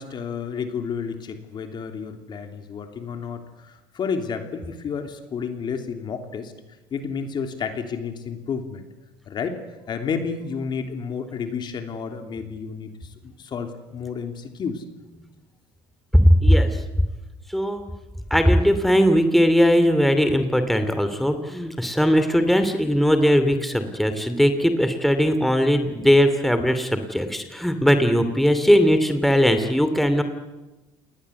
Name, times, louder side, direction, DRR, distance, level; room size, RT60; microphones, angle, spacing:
voice 1, 0.0-6.5 6.9-8.8 9.3-9.6 9.9-14.8, left 6 dB, 45° left, 6 dB, 3.2 m, -31 dB
voice 2, 16.1-16.8 17.5-17.8 18.3-30.2, equal, ahead, 8 dB, 2.7 m, -19 dB
28.0 x 19.5 x 8.3 m, 1.1 s
supercardioid pair, 95°, 11 cm